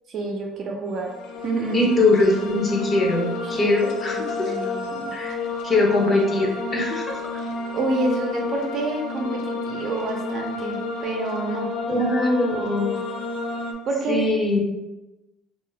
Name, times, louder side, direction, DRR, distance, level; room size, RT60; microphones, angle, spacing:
voice 1, 0.1-1.1 1.4-1.8 3.4-3.7 4.1-5.1 7.4-12.1 13.9-14.2, right 2 dB, 50° right, 1 dB, 0.6 m, -28 dB
sound 1, 0.9-13.7, left 3 dB, 75° left, 0.5 m, -31 dB
voice 2, 1.7-4.5 5.1-5.3 5.6-7.2 11.9-12.9 14.1-14.6, left 2 dB, 30° left, 0 dB, 0.6 m, -21 dB
2.4 x 2.1 x 3.9 m, 1.0 s
cardioid pair, 125°, 0 cm